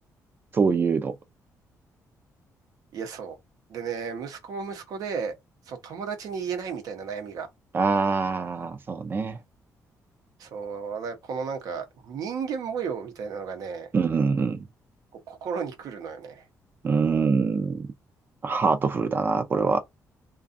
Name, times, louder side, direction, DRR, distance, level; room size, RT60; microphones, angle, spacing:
voice 1, 0.5-1.1 7.7-9.4 13.9-14.6 16.8-17.9 18.4-19.8, right 5 dB, 35° right, 0.5 m, -24 dB
voice 2, 2.9-3.4 3.7-5.3 5.7-7.5 10.4-13.9 15.3-16.5, right 6 dB, 75° right, 0.8 m, -33 dB
2.4 x 2.3 x 2.5 m
cardioid pair, 135°, 6 cm